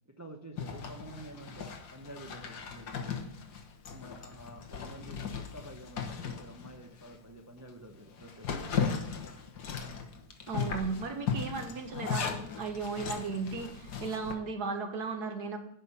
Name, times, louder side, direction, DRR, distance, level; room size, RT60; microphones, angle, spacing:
voice 1, 0.2-3.2 3.9-9.0, right 1 dB, 20° right, 4 dB, 0.5 m, -49 dB
Zipper (clothing), 0.6-7.2 7.6-7.7 8.1-14.4, left 6 dB, 70° left, 1.8 m, -37 dB
voice 2, 10.5-15.6, right 4 dB, 70° right, 6 dB, 1.8 m, -36 dB
11.0 x 5.5 x 8.3 m, 0.74 s
omnidirectional pair, 1.8 m